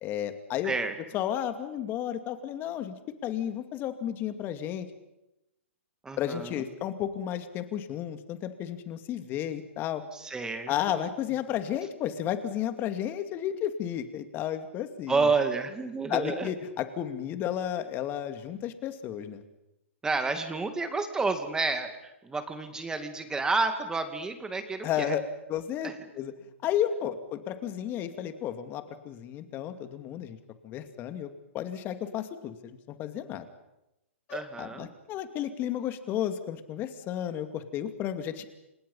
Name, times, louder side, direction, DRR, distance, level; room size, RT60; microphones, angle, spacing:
voice 1, 0.0-0.7 1.1-2.9 3.2-4.9 6.2-10.0 10.7-15.3 16.1-19.4 24.8-25.2 25.5-26.3 26.6-30.4 30.6-31.3 31.5-33.5 34.3-38.4, left 10 dB, 30° left, 8 dB, 2.6 m, -32 dB
voice 2, 6.0-6.6 10.1-11.0 15.1-16.5 20.0-25.2 25.8-26.0 34.3-34.9, right 4 dB, 10° right, 7 dB, 2.4 m, -30 dB
30.0 x 26.5 x 5.7 m, 0.91 s
hypercardioid pair, 135°, 7 cm